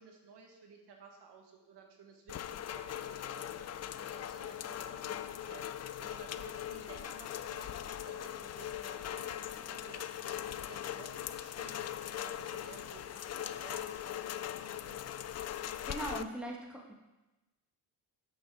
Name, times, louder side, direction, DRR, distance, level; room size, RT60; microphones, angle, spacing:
voice 1, 0.0-11.8 12.2-15.3, right 5 dB, 65° right, 2 dB, 1.6 m, -55 dB
Rain, 2.3-16.2, left 10 dB, 40° left, 0.4 m, -40 dB
voice 2, 15.6-16.9, right 1 dB, ahead, -1 dB, 1.5 m, -41 dB
6.9 x 6.3 x 4.7 m, 1.1 s
supercardioid pair, 75°, 45 cm